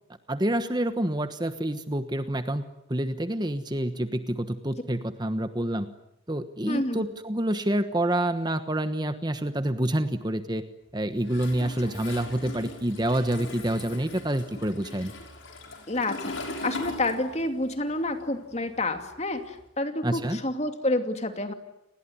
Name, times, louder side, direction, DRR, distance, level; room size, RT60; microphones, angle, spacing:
voice 1, 0.3-2.6 2.9-5.9 6.3-10.6 10.9-15.1 20.0-20.4, right 1 dB, 20° right, 10 dB, 1.2 m, -27 dB
voice 2, 6.7-7.1 15.9-16.3 16.6-21.5, left 2 dB, 35° left, 7 dB, 2.6 m, -29 dB
Toilet flush, 11.3-17.7 18.0-19.6, left 2 dB, 70° left, 6.1 m, -39 dB
30.0 x 20.5 x 9.7 m, 0.83 s
head